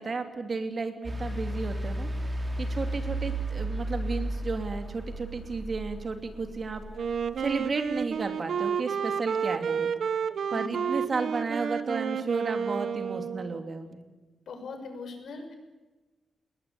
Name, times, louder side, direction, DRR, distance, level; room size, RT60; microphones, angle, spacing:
voice 1, 0.0-6.8 7.4-9.9 10.5-14.0, right 4 dB, 40° right, 6 dB, 2.9 m, -33 dB
sound 1, 1.0-8.2, right 1 dB, 20° right, 3.2 m, -34 dB
Wind instrument woodwind instrument, 6.9-13.7, right 7 dB, 65° right, 1.1 m, -30 dB
voice 2, 10.5-10.8 14.5-15.5, left 3 dB, 75° left, 5 dB, 6.4 m, -40 dB
28.0 x 21.0 x 8.6 m, 1.2 s
wide cardioid pair, 140°, 0 cm